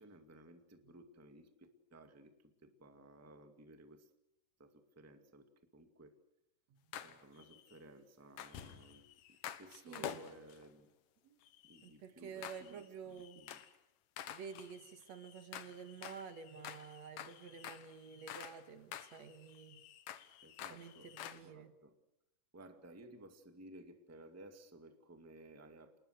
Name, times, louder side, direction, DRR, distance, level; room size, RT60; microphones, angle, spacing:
voice 1, 0.0-4.1 4.6-6.1 7.0-10.9 11.6-13.6 20.4-21.9 22.5-26.0, right 1 dB, 5° right, 7 dB, 1.5 m, -58 dB
sound 1, 6.9-7.8 8.4-10.7 11.4-11.9 12.4-12.9 13.2-13.8 14.2-18.6 18.9-21.4, left 10 dB, 85° left, 2.8 m, -49 dB
voice 2, 9.7-10.2 11.2-11.4 11.8-13.4 14.3-19.8 20.7-21.7, right 6 dB, 60° right, 9 dB, 2.5 m, -51 dB
29.0 x 20.5 x 6.6 m, 0.84 s
omnidirectional pair, 3.7 m